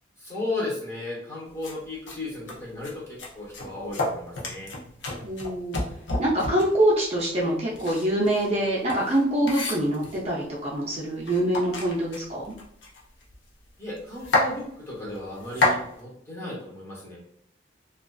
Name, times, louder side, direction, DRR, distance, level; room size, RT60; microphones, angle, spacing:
voice 1, 0.2-4.7 13.8-17.2, left 2 dB, 15° left, -6 dB, 0.8 m, -35 dB
sound 1, 1.6-1.7 2.1-2.2 2.5-2.9 3.2-6.8 7.7-10.3 10.9-11.0 11.2-13.3 13.7-13.8 14.0-14.5 15.2-15.8, left 2 dB, 70° left, 0.6 m, -29 dB
voice 2, 5.2-5.8 6.2-12.4, right 1 dB, 35° right, -5 dB, 0.4 m, -25 dB
2.3 x 2.3 x 2.2 m, 0.68 s
head